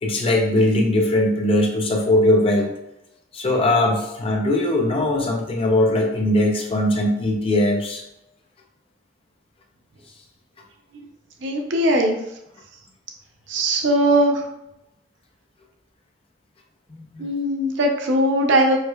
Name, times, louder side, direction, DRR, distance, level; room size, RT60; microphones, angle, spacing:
voice 1, 0.0-2.7 3.3-8.0 16.9-17.3, left 1 dB, 30° left, 1 dB, 0.5 m, -20 dB
voice 2, 11.4-12.2 13.5-14.4 17.2-18.8, right 1 dB, 80° right, 3 dB, 0.5 m, -19 dB
4.5 x 2.2 x 2.2 m, 0.88 s
head